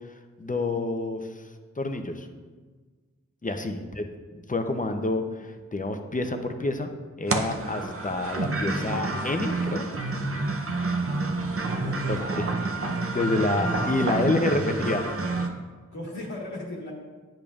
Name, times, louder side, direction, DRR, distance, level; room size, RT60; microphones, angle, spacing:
voice 1, 0.4-1.4 1.8-2.3 3.4-4.1 4.3-6.9 7.2-9.9 12.1-12.4 13.1-15.1, left 2 dB, 25° left, 6 dB, 0.6 m, -28 dB
sound 1, 7.3-15.5, right 3 dB, 45° right, 0.7 m, -29 dB
voice 2, 11.8-12.5 14.0-14.1 14.4-14.5 15.9-16.9, left 1 dB, 70° left, -5 dB, 1.4 m, -36 dB
10.0 x 5.1 x 2.4 m, 1.4 s
wide cardioid pair, 50°, 30 cm